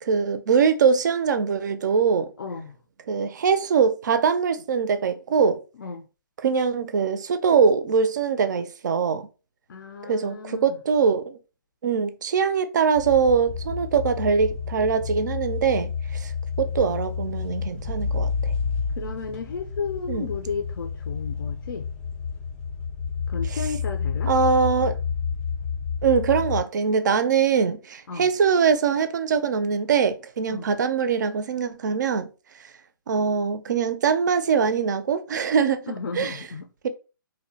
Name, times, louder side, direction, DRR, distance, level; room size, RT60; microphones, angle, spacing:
voice 1, 0.0-2.3 3.1-5.6 6.4-9.3 10.0-11.4 11.8-16.3 16.6-18.5 20.1-20.3 23.5-23.6 24.3-25.0 26.0-32.3 33.1-36.4 36.8-36.9, right 6 dB, 55° right, 0.4 m, -22 dB
voice 2, 2.4-2.8 5.8-6.1 9.7-10.8 19.0-21.9 23.3-24.3 28.1-28.3 30.5-30.7 35.9-36.9, left 5 dB, 70° left, 0.4 m, -33 dB
sound 1, 12.9-26.6, left 6 dB, 10° left, 0.4 m, -30 dB
2.6 x 2.1 x 2.6 m
hypercardioid pair, 150°, 12 cm